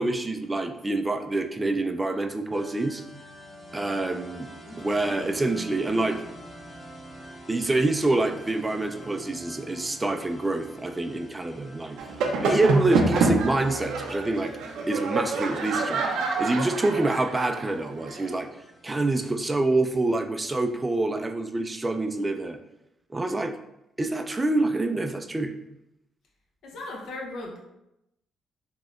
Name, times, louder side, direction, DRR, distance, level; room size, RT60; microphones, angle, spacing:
voice 1, 0.0-3.0 3.7-4.5 4.8-6.2 7.5-12.0 12.4-14.5 14.9-16.0 16.4-18.5 18.8-22.6 23.1-23.5 24.0-25.5, right 2 dB, 20° right, 6 dB, 0.3 m, -26 dB
sound 1, 2.5-19.4, right 1 dB, ahead, 0.8 m, -47 dB
sound 2, 12.0-18.3, right 3 dB, 85° right, 0.5 m, -27 dB
voice 2, 26.6-27.6, left 2 dB, 70° left, -1 dB, 0.8 m, -38 dB
4.0 x 2.8 x 2.4 m, 0.86 s
cardioid pair, 90°, 0 cm